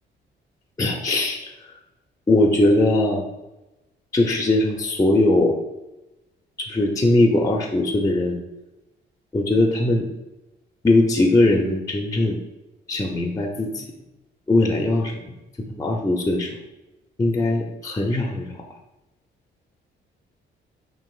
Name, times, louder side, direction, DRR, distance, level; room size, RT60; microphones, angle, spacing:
voice 1, 0.8-1.7 2.3-3.3 4.1-5.6 6.6-8.4 9.3-10.1 10.8-12.4 12.9-13.9 14.5-15.3 15.7-16.6 17.2-18.6, left 2 dB, 15° left, 2 dB, 0.5 m, -20 dB
5.8 x 2.5 x 2.4 m, 1.0 s
cardioid pair, 90°, 20 cm